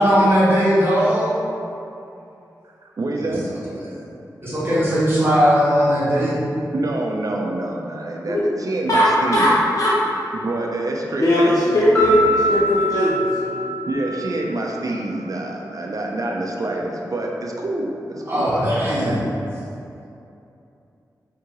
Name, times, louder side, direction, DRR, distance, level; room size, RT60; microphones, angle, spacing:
voice 1, 0.0-1.4 3.2-3.3 3.8-4.0 4.4-6.4 18.3-19.2, equal, 30° right, -9 dB, 1.1 m, -18 dB
voice 2, 2.8-3.4 6.7-9.5 10.3-12.6 13.9-18.8 19.0-19.2, right 2 dB, 50° right, 0 dB, 0.5 m, -27 dB
voice 3, 8.9-10.0 11.2-12.2 12.5-13.6, left 1 dB, 45° left, -8 dB, 0.6 m, -18 dB
Piano, 11.9-14.8, left 1 dB, 15° left, 1.0 m, -23 dB
3.5 x 2.9 x 2.9 m, 2.7 s
cardioid pair, 45°, 7 cm